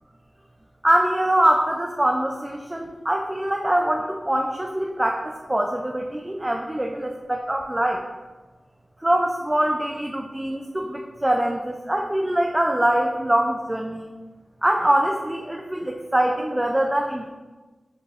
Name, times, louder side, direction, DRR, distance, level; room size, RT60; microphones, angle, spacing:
voice 1, 0.8-8.0 9.0-14.1 14.6-17.3, right 1 dB, 20° right, 2 dB, 0.3 m, -23 dB
6.5 x 2.2 x 3.3 m, 1.2 s
wide cardioid pair, 85°, 0 cm